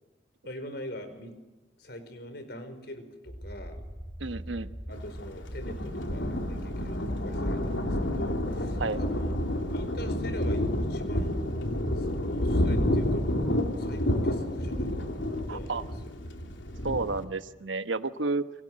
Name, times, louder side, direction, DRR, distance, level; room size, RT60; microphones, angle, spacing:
voice 1, 0.4-1.3 1.8-3.8 4.9-10.6 10.9-11.4 12.0-13.3 13.8-16.2, left 1 dB, 60° left, 9 dB, 5.0 m, -43 dB
sound 1, 3.3-11.4, equal, 5° right, 4.0 m, -39 dB
voice 2, 4.2-4.7 8.8-9.0 15.5-15.8 16.8-18.4, right 3 dB, 85° right, 11 dB, 1.2 m, -31 dB
Thunder, 4.9-17.2, left 1 dB, 85° left, 3.4 m, -30 dB
29.5 x 24.0 x 7.7 m, 1.2 s
head